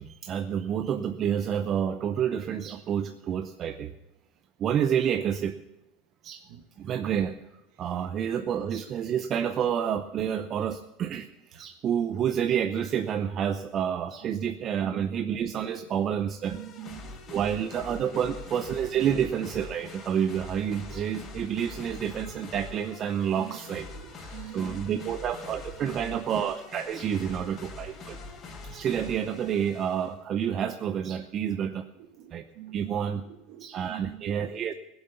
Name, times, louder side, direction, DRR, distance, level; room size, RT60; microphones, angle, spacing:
voice 1, 0.0-3.9 4.6-5.6 6.2-6.4 6.8-7.4 7.8-16.6 17.3-23.9 24.5-28.2 28.6-31.9 32.3-32.4 32.7-33.2 33.6-34.7, right 8 dB, 40° right, 8 dB, 0.7 m, -29 dB
voice 2, 14.2-14.5 16.5-17.4 18.1-18.2 18.9-19.1 23.4-25.1 25.8-26.4 28.1-28.2 32.0-34.5, right 13 dB, 65° right, 7 dB, 1.8 m, -44 dB
sound 1, 16.4-30.2, left 3 dB, 35° left, 3.8 m, -44 dB
17.0 x 8.0 x 7.1 m, 0.93 s
hypercardioid pair, 100°, 0 cm